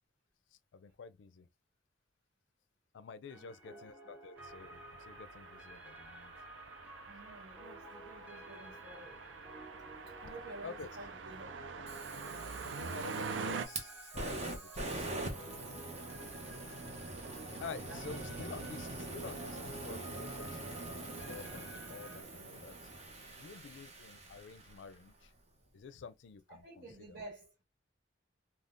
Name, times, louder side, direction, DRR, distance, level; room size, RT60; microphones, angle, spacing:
voice 1, 0.7-1.5 2.9-6.3 10.6-11.0 12.6-15.3 17.1-17.3 17.6-22.9 23.4-25.3 25.7-27.2, left 5 dB, 80° left, 0.4 m, -49 dB
sound 1, 3.3-22.2, right 1 dB, 10° right, 0.9 m, -53 dB
voice 2, 3.3-3.8 7.1-9.2 10.2-11.6 16.9-17.1 17.9-18.3 26.5-27.5, right 2 dB, 65° right, 1.4 m, -51 dB
sound 2, 4.4-13.6, right 5 dB, 90° right, 0.4 m, -45 dB
Fire, 11.9-25.0, right 2 dB, 35° right, 0.8 m, -44 dB
3.5 x 2.3 x 2.5 m
head